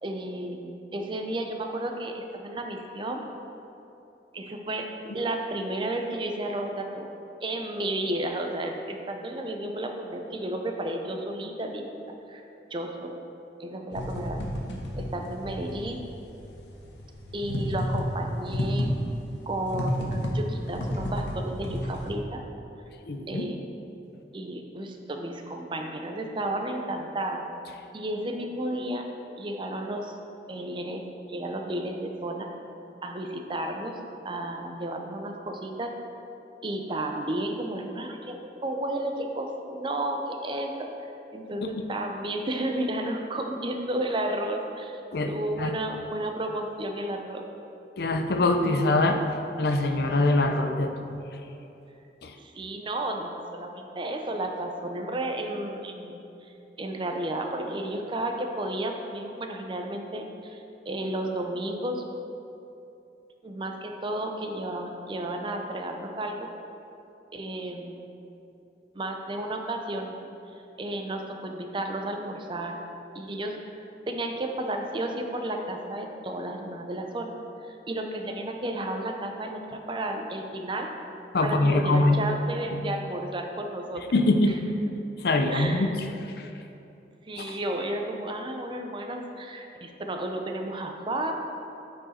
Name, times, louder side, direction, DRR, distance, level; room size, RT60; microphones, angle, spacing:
voice 1, 0.0-3.2 4.3-7.1 7.4-11.9 12.3-12.4 12.7-13.1 13.6-14.4 15.0-16.0 17.3-18.9 19.5-22.4 23.3-23.6 24.3-27.4 27.9-29.1 29.4-30.2 30.5-31.0 31.3-32.5 33.0-34.0 34.2-35.9 36.6-40.9 41.3-45.0 45.3-47.5 52.4-62.0 63.4-66.5 67.3-68.1 68.9-70.2 70.8-72.8 73.1-73.6 74.1-77.3 77.6-80.9 81.4-84.1 85.5-85.9 87.3-91.3, right 1 dB, 25° right, 3 dB, 0.5 m, -32 dB
sound 1, 13.9-22.2, equal, 80° left, 0.9 m, -31 dB
voice 2, 23.1-23.5 41.6-41.7 45.1-45.3 45.6-45.7 48.0-49.2 49.6-51.2 52.2-52.3 81.3-82.2 84.1-84.6 85.2-85.9 87.4-87.5, left 2 dB, 60° left, 5 dB, 0.5 m, -23 dB
8.6 x 4.7 x 4.2 m, 2.8 s
head